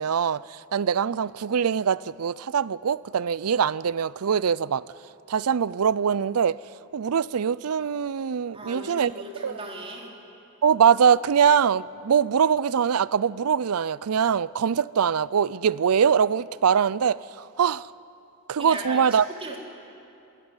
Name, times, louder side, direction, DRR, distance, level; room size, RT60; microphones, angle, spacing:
voice 1, 0.0-4.8 5.3-6.6 6.9-9.1 9.4-9.5 10.6-17.9 18.5-19.2, right 7 dB, 90° right, 0.5 m, -23 dB
voice 2, 8.5-10.1 18.6-19.6, right 2 dB, 25° right, 3.9 m, -37 dB
26.0 x 17.5 x 9.8 m
head